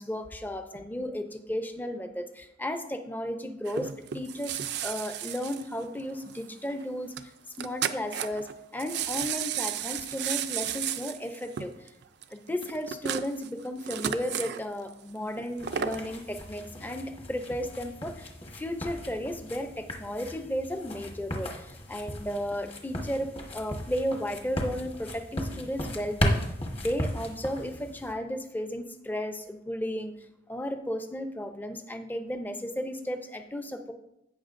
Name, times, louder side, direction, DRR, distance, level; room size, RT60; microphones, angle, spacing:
voice 1, 0.0-7.3 7.6-11.9 12.3-26.4 26.8-30.1 30.5-33.9, equal, 10° left, 7 dB, 0.6 m, -34 dB
sound 1, 3.7-6.4 6.7-6.8 7.2-7.3 7.5-8.5 8.8-14.6 15.4-16.1 16.6-16.7, right 9 dB, 60° right, 0.4 m, -33 dB
sound 2, 15.6-28.1, equal, 30° left, 1.2 m, -36 dB
16.0 x 5.7 x 2.6 m, 0.86 s
head